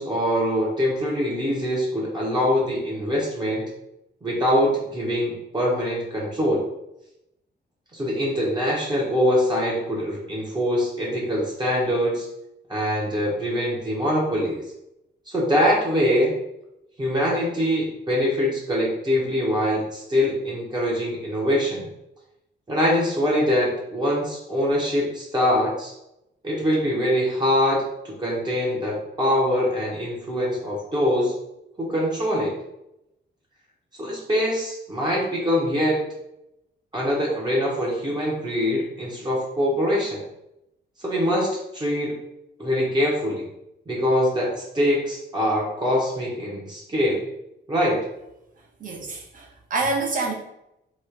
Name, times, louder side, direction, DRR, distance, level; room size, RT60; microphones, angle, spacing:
voice 1, 0.0-3.7 4.2-6.7 7.9-12.3 12.7-14.6 15.3-16.4 17.0-21.9 22.7-25.9 26.4-31.3 31.8-32.5 34.0-36.0 36.9-40.2 41.0-42.2 42.6-43.5 43.9-47.3 47.7-48.0, equal, 25° right, -4 dB, 0.9 m, -23 dB
voice 2, 48.8-50.3, right 3 dB, 45° right, 0 dB, 0.9 m, -27 dB
3.1 x 3.0 x 4.5 m, 0.84 s
wide cardioid pair, 170°, 19 cm